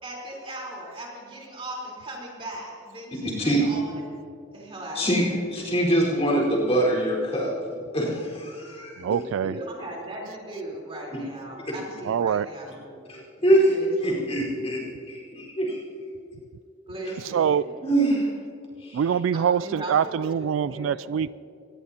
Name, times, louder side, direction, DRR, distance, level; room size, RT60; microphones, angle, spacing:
voice 1, 0.0-4.0 4.5-5.4 9.4-12.9 13.4-13.9 16.9-17.8 19.3-19.9 20.2-21.2, right 1 dB, 25° right, -3 dB, 3.9 m, -38 dB
voice 2, 3.2-3.6 4.9-5.2 5.5-7.5 7.9-9.0 13.1-13.8 14.0-14.8 15.1-15.8 17.0-17.1 17.8-18.3 18.8-19.0, right 1 dB, 30° left, -3 dB, 4.5 m, -24 dB
voice 3, 9.0-9.5 12.0-12.5 17.2-17.8 18.9-21.3, right 8 dB, 80° right, 18 dB, 0.3 m, -24 dB
23.5 x 19.0 x 2.9 m, 2.5 s
head